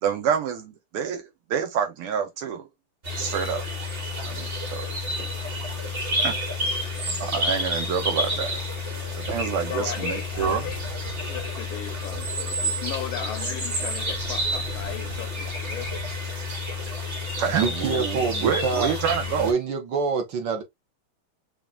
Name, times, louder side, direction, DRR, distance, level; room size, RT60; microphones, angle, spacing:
voice 1, 0.0-2.7 3.2-3.7 4.2-4.8 6.2-6.3 7.0-8.6 9.2-10.6 17.4-19.5, right 7 dB, 90° right, 2.0 m, -28 dB
sound 1, 3.0-19.5, left 1 dB, 30° right, 1.3 m, -29 dB
voice 2, 4.9-5.3 9.7-15.9, left 11 dB, 80° left, 1.4 m, -37 dB
voice 3, 17.5-18.9 19.4-20.6, right 5 dB, 65° right, 1.5 m, -26 dB
5.7 x 2.6 x 2.3 m
omnidirectional pair, 2.4 m